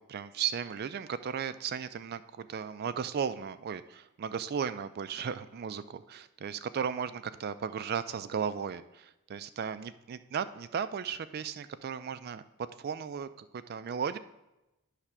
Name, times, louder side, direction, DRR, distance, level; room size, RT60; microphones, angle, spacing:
voice 1, 0.0-12.4 12.8-14.2, right 7 dB, 45° right, 13 dB, 0.3 m, -35 dB
9.8 x 3.3 x 6.0 m, 0.96 s
head